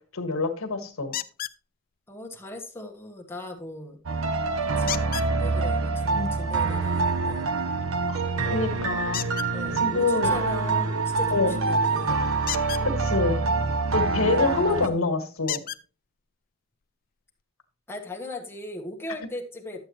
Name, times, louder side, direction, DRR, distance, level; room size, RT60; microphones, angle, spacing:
voice 1, 0.1-1.1 6.1-6.3 8.1-9.3 9.8-10.4 11.3-11.5 12.8-13.4 13.9-15.6, left 3 dB, 85° left, 6 dB, 1.6 m, -26 dB
sound 1, 1.1-1.6 4.9-5.3 9.1-9.5 12.4-12.8 14.5-14.6 15.5-15.8 16.8-16.9 17.4-17.5, left 13 dB, 45° left, 0.4 m, -32 dB
voice 2, 2.1-4.0 4.8-7.5 8.4-8.5 9.5-12.2 14.3-15.0 17.9-19.8, left 1 dB, 10° left, 1 dB, 1.3 m, -39 dB
sound 2, 4.1-14.9, right 3 dB, 70° right, 0.8 m, -26 dB
11.5 x 7.8 x 3.1 m, 0.37 s
head